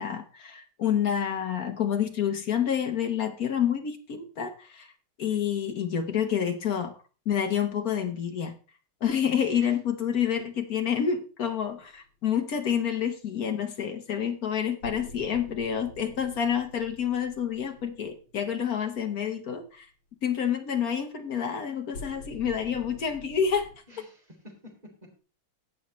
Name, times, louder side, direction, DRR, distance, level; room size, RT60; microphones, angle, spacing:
voice 1, 0.0-4.9 5.2-6.9 7.3-8.5 9.0-19.9 20.2-23.7, left 8 dB, 55° left, 6 dB, 1.2 m, -28 dB
sound 1, 11.5-12.0 14.8-19.1 21.9-23.8, left 1 dB, 75° left, 3.4 m, -47 dB
voice 2, 23.9-25.2, left 1 dB, 15° right, -1 dB, 3.3 m, -50 dB
17.5 x 6.4 x 3.1 m, 0.35 s
omnidirectional pair, 2.4 m